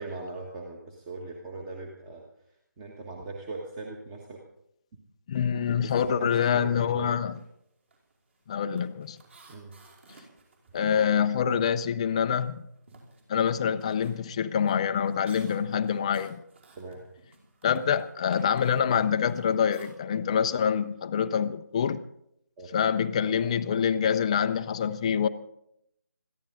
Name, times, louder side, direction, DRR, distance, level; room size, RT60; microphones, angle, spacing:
voice 1, 0.0-2.2 2.8-4.4 5.7-7.1 9.5-9.7 16.8-17.0 22.6-22.7, right 3 dB, 15° right, 1.5 m, -39 dB
voice 2, 5.3-7.3 8.5-9.2 10.7-12.7 13.3-16.4 17.6-22.0 22.7-25.3, left 7 dB, 20° left, 0.5 m, -26 dB
sound 1, 7.3-7.5 7.8-11.9 12.2-19.9, right 2 dB, 40° right, 5.1 m, -54 dB
21.5 x 14.5 x 3.9 m
figure-of-eight pair, 160°, 10 cm